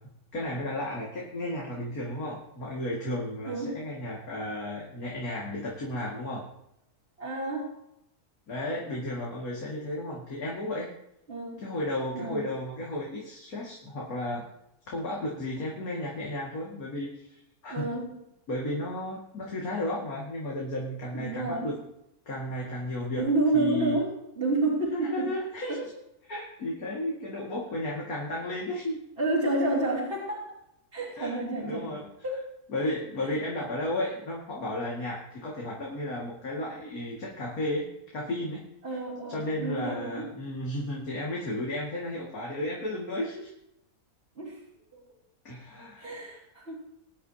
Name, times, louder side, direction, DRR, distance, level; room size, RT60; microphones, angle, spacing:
voice 1, 0.3-6.4 8.5-10.9 11.6-14.5 14.9-17.9 18.5-21.8 22.3-23.2 23.5-24.0 24.9-25.9 26.3-29.0 31.2-32.1 32.7-38.6 39.3-43.5 45.4-46.1, left 1 dB, 70° left, -4 dB, 2.6 m, -33 dB
voice 2, 3.4-3.8 7.2-7.7 11.3-11.7 12.1-12.4 17.7-18.1 21.1-21.7 23.2-25.3 25.7-25.8 29.2-30.4 30.9-31.9 32.2-32.5 33.2-33.3 38.8-40.3 44.4-44.6 44.9-45.0 46.0-46.8, right 2 dB, 40° right, -8 dB, 3.2 m, -29 dB
22.0 x 9.6 x 2.8 m, 0.82 s
omnidirectional pair, 1.6 m